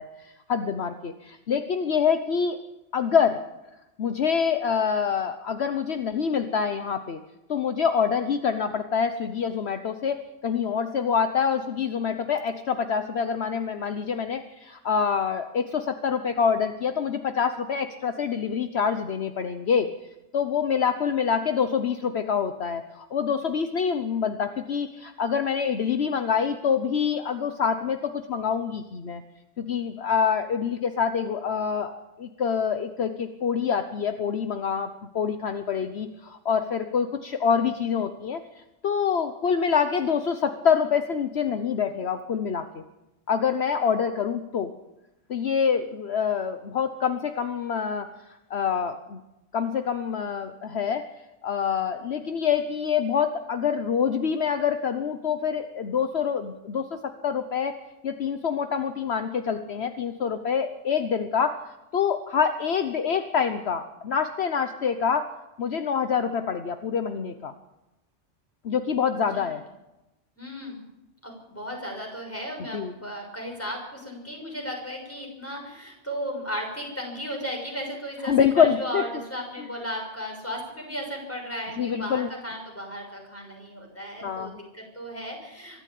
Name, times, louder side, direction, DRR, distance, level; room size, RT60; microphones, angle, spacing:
voice 1, 0.0-2.6 2.9-3.4 4.0-7.2 7.5-19.9 20.3-29.2 29.6-38.4 38.8-42.8 43.3-44.7 45.3-48.1 48.5-49.2 49.5-51.1 51.4-57.7 58.0-61.6 61.9-65.3 65.6-67.5 68.6-69.6 72.7-72.9 78.2-79.0 79.6-79.7 81.8-82.3 84.2-84.6, left 7 dB, 60° left, 8 dB, 1.2 m, -26 dB
voice 2, 70.4-70.8 71.2-85.8, equal, 10° left, 1 dB, 6.3 m, -35 dB
24.0 x 13.0 x 8.6 m, 0.97 s
omnidirectional pair, 1.2 m